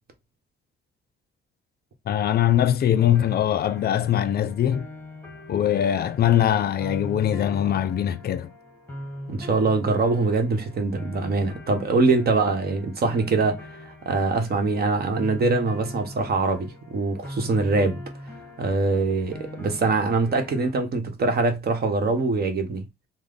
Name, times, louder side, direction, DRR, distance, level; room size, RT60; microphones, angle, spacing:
voice 1, 2.1-4.9 5.5-8.5, left 10 dB, 55° left, 0.5 m, -22 dB
sound 1, 2.9-20.7, left 1 dB, 10° left, 1.2 m, -41 dB
voice 2, 9.3-13.7 14.0-18.0 18.6-22.8, right 3 dB, 50° right, 1.0 m, -23 dB
3.1 x 2.1 x 3.8 m
cardioid pair, 90°, 20 cm